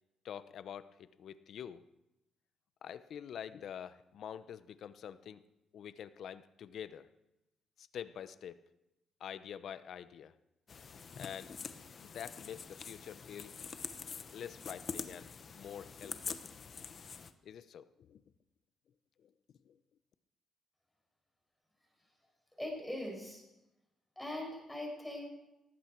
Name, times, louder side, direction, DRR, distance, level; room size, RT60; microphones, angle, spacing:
voice 1, 0.2-1.8 2.8-5.4 5.7-7.1 7.8-8.6 9.2-10.3 11.2-11.5 12.0-13.6 14.3-16.4 17.4-18.2 19.2-19.3 19.6-19.8, left 9 dB, 65° left, 14 dB, 0.8 m, -46 dB
sound 1, 10.7-17.3, left 6 dB, 45° left, 1.1 m, -45 dB
voice 2, 22.6-23.4 24.2-25.3, left 1 dB, 5° left, -1 dB, 6.3 m, -41 dB
18.5 x 14.5 x 4.6 m, 0.93 s
cardioid pair, 90°, 0 cm